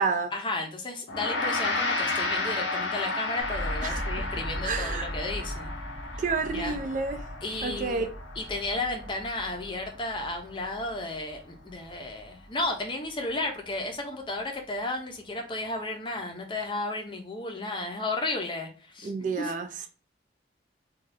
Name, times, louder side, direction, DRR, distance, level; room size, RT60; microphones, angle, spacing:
voice 1, 0.3-5.7 6.4-6.8 7.4-8.1 8.4-19.5, left 2 dB, 25° left, 0.5 m, -33 dB
Gong, 1.1-10.6, left 3 dB, 80° left, 0.6 m, -33 dB
sound 1, 3.4-13.4 13.7-14.4, equal, 25° right, 0.8 m, -39 dB
voice 2, 4.6-5.1 6.2-7.2 7.6-8.1 19.0-19.7, right 4 dB, 45° right, 0.3 m, -29 dB
2.6 x 2.3 x 3.2 m
head